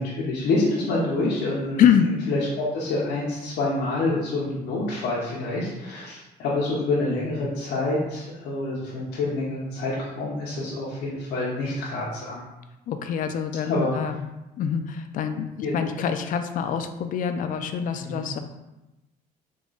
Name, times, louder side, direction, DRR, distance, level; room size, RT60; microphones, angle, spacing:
voice 1, 0.0-1.8 2.3-2.5 2.7-12.4 13.6-13.9 15.6-15.7 18.0-18.2, left 2 dB, 80° left, -5 dB, 0.8 m, -27 dB
voice 2, 1.8-2.1 12.9-14.3 14.6-18.4, left 8 dB, 55° left, 8 dB, 0.4 m, -25 dB
3.7 x 2.3 x 3.9 m, 0.97 s
cardioid pair, 110°, 17 cm